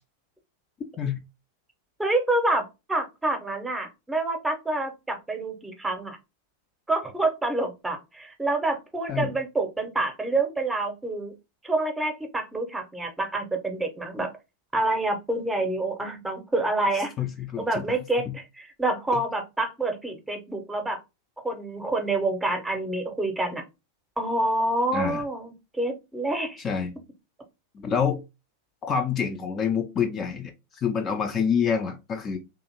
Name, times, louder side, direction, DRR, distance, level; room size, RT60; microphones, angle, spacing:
voice 1, 2.0-2.6 2.9-6.2 6.9-11.3 11.6-14.3 14.7-17.1 17.6-21.0 21.4-23.6 24.2-26.6, right 2 dB, 10° right, 4 dB, 0.7 m, -27 dB
voice 2, 17.2-17.8 19.1-19.2 24.9-25.2 26.6-26.9 27.7-28.2 28.8-32.4, left 7 dB, 25° left, 5 dB, 0.4 m, -27 dB
2.5 x 2.4 x 2.8 m, 0.25 s
figure-of-eight pair, 90°, 0 cm